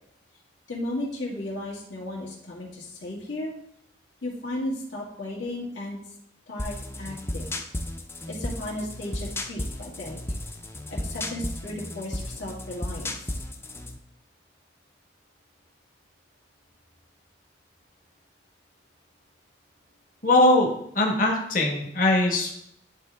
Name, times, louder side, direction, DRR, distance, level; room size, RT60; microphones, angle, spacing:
voice 1, 0.7-3.5 4.2-6.0 6.5-7.6 8.3-10.2 10.9-13.4, left 1 dB, 80° left, -5 dB, 2.2 m, -35 dB
sound 1, 6.6-14.0, left 1 dB, 15° left, 0.5 m, -34 dB
voice 2, 20.2-20.7 20.9-22.5, left 1 dB, 45° left, -1 dB, 1.2 m, -21 dB
10.5 x 3.8 x 3.5 m, 0.72 s
head